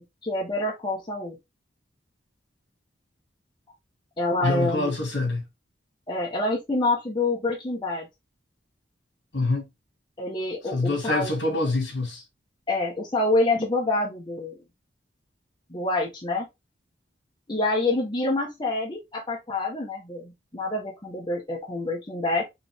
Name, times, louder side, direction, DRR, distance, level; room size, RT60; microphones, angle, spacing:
voice 1, 0.0-1.4 4.2-4.9 6.1-8.1 10.2-11.3 12.7-14.6 15.7-16.4 17.5-22.4, left 2 dB, 25° left, 1.1 m, -27 dB
voice 2, 4.4-5.4 9.3-9.7 10.7-12.2, left 2 dB, 70° left, 2.4 m, -25 dB
4.8 x 3.1 x 3.5 m
head